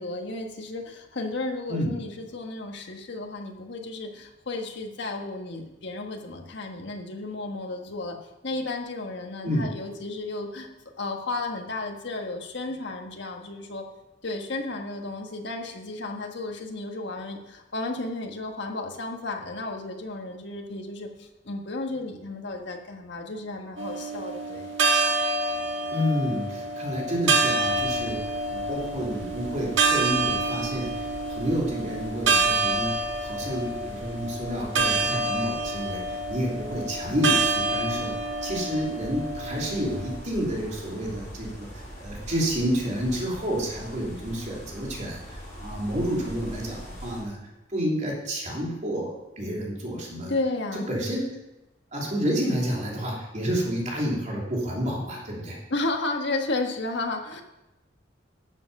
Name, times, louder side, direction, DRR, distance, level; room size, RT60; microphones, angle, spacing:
voice 1, 0.0-8.2 8.4-10.7 11.0-13.8 14.2-24.7 50.3-50.9 55.7-57.4, left 2 dB, 65° left, 3 dB, 1.5 m, -33 dB
sound 1, 23.8-40.2, right 3 dB, 80° right, 1.6 m, -27 dB
voice 2, 25.9-28.2 28.5-32.9 33.2-38.1 38.4-47.4 47.7-50.3 50.9-51.2 51.9-55.6, equal, 40° right, -2 dB, 3.1 m, -29 dB
sound 2, 27.5-47.2, equal, 15° left, 4.8 m, -43 dB
12.5 x 7.6 x 5.4 m, 0.98 s
head